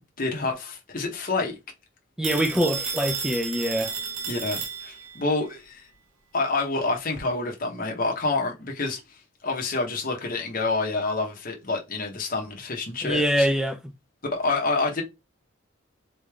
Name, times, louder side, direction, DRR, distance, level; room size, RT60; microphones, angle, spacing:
voice 1, 0.0-1.6 4.3-5.8 6.3-9.0 9.4-13.5 14.3-15.0, left 3 dB, 45° left, 0.9 m, -28 dB
voice 2, 2.2-3.9 13.0-13.9, equal, 5° right, 0.6 m, -24 dB
Telephone, 2.2-5.2, right 5 dB, 90° right, 0.9 m, -32 dB
3.8 x 3.4 x 3.4 m
head